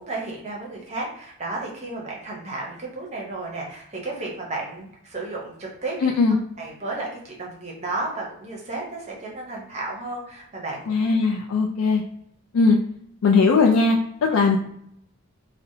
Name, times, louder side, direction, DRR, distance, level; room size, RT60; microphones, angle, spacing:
voice 1, 0.0-6.1 6.6-11.0, right 2 dB, 30° right, -2 dB, 0.6 m, -33 dB
voice 2, 6.0-6.4 10.9-12.0 12.5-12.8 13.2-14.6, left 4 dB, 75° left, -1 dB, 0.3 m, -19 dB
2.7 x 2.1 x 2.6 m, 0.69 s
head